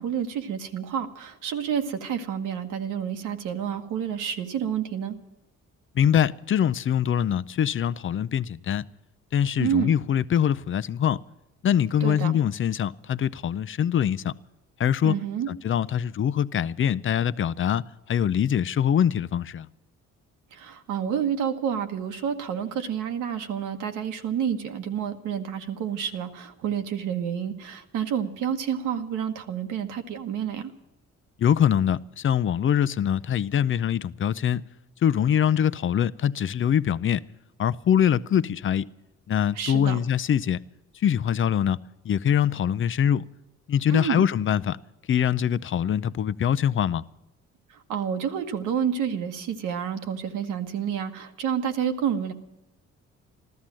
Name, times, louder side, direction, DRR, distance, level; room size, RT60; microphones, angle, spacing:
voice 1, 0.0-5.2 9.6-9.9 12.0-12.3 15.0-15.5 20.5-30.7 39.5-40.0 43.9-44.2 47.7-52.3, right 8 dB, 85° right, 1.5 m, -29 dB
voice 2, 5.9-8.8 9.3-11.2 11.6-14.3 14.8-15.1 15.5-19.7 31.4-34.6 35.0-37.2 37.6-38.9 39.3-40.6 40.9-41.8 42.0-43.2 43.7-44.8 45.1-47.0, left 9 dB, 40° left, 0.6 m, -23 dB
14.5 x 13.0 x 7.5 m
cardioid pair, 90°, 30 cm